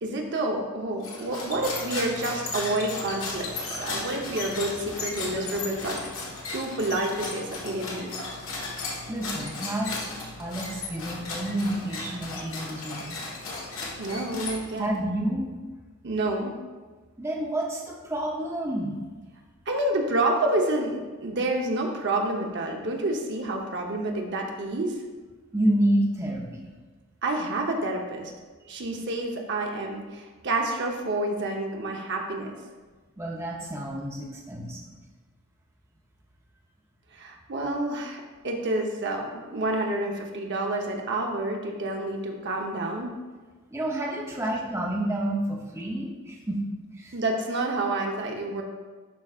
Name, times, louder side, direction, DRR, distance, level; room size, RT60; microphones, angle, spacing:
voice 1, 0.0-6.0 6.5-8.1 14.0-15.0 16.0-16.5 19.7-25.0 27.2-28.3 28.7-32.5 37.1-43.1 47.1-48.6, right 2 dB, 55° right, 1 dB, 0.9 m, -29 dB
sound 1, 1.0-15.0, left 3 dB, 70° left, 1.5 m, -35 dB
voice 2, 9.1-10.1 10.4-13.2 14.8-15.5 17.2-19.0 25.5-26.7 28.6-28.7 33.2-35.0 43.7-46.6 46.9-47.1, right 1 dB, 15° right, -2 dB, 0.7 m, -29 dB
11.0 x 4.8 x 2.4 m, 1.4 s
head